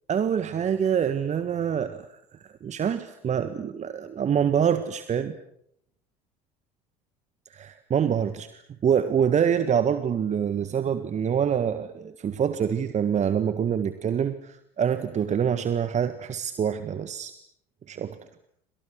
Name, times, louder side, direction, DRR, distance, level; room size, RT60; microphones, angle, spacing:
voice 1, 0.1-2.1 2.4-5.4 7.5-17.3 17.9-18.2, right 8 dB, 35° right, 11 dB, 1.6 m, -26 dB
28.5 x 26.5 x 6.4 m, 0.70 s
figure-of-eight pair, 65°, 20 cm